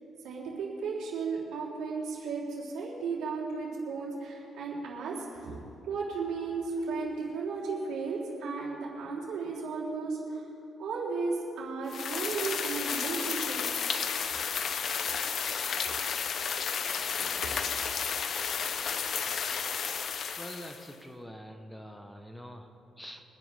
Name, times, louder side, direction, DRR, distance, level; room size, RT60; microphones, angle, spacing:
voice 1, 0.2-5.6 5.9-10.4 10.8-13.9 17.2-17.7, right 4 dB, 80° right, -5 dB, 3.6 m, -35 dB
sound 1, 11.9-20.9, left 6 dB, 60° left, 0.8 m, -32 dB
voice 2, 20.4-23.2, equal, 5° left, 5 dB, 1.1 m, -45 dB
24.5 x 10.0 x 3.5 m, 2.8 s
cardioid pair, 90°, 0 cm